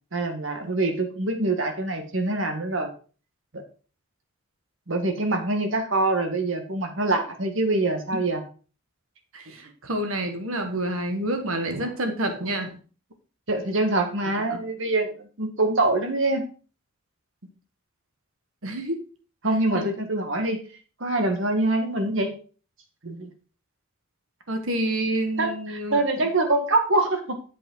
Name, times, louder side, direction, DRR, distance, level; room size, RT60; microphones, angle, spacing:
voice 1, 0.1-2.9 3.5-3.6 4.9-8.4 13.5-15.1 15.4-16.5 19.4-20.6 21.0-22.3 23.0-23.3 25.4-27.4, right 2 dB, 65° right, 5 dB, 1.7 m, -24 dB
voice 2, 9.3-12.8 14.5-14.6 18.6-19.0 19.7-19.9 24.5-26.3, right 1 dB, 85° right, 6 dB, 1.7 m, -28 dB
8.2 x 7.7 x 3.8 m, 0.37 s
head